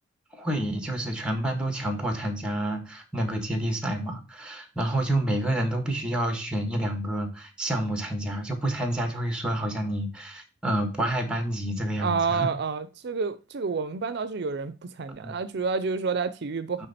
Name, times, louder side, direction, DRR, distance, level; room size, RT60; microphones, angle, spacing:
voice 1, 0.3-12.5 15.2-15.4 16.8-16.9, right 1 dB, 5° right, 1.5 m, -29 dB
voice 2, 12.0-16.9, right 5 dB, 60° right, 0.5 m, -29 dB
9.3 x 3.6 x 4.2 m
head